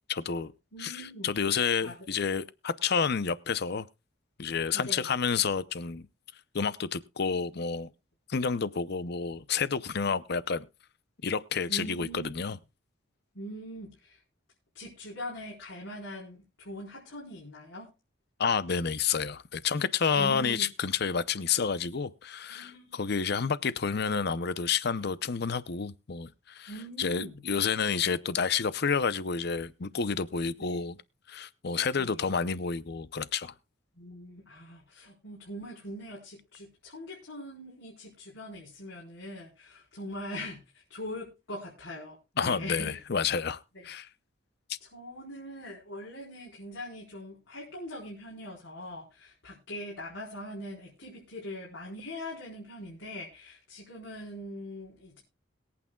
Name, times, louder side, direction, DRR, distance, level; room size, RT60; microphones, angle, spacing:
voice 1, 0.1-0.5 0.8-3.9 4.4-6.1 6.5-7.9 8.3-10.7 11.2-12.6 18.4-26.7 27.0-31.0 31.3-33.5 42.4-44.1, left 6 dB, 55° left, 0.6 m, -29 dB
voice 2, 0.7-1.3 1.8-1.9 4.7-5.1 11.7-12.4 13.3-14.2 14.7-17.9 20.1-20.7 22.5-23.0 26.7-27.4 30.6-30.8 31.9-32.3 34.0-43.0 43.7-43.9 44.8-55.2, equal, 75° left, 4.1 m, -42 dB
22.0 x 8.6 x 2.3 m
head